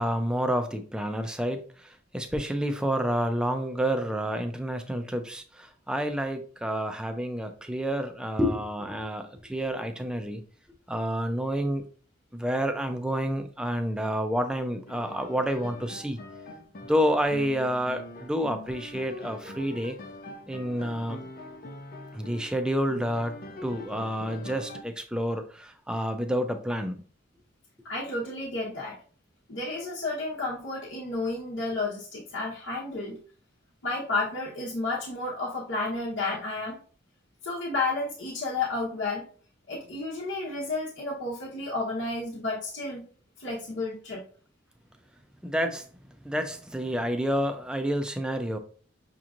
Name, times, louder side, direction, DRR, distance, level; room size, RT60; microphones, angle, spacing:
voice 1, 0.0-10.4 10.9-11.8 12.3-16.2 16.8-20.0 20.5-21.2 22.1-23.3 23.6-27.0 45.4-45.9 46.2-48.6, equal, 5° right, 7 dB, 0.4 m, -29 dB
sound 1, 14.9-24.8, left 2 dB, 45° left, 0.5 m, -43 dB
voice 2, 27.8-29.0 29.5-33.2 33.8-36.8 37.4-39.3 39.7-43.1 43.4-44.2, left 3 dB, 70° left, -5 dB, 0.9 m, -31 dB
6.0 x 2.9 x 2.5 m, 0.42 s
head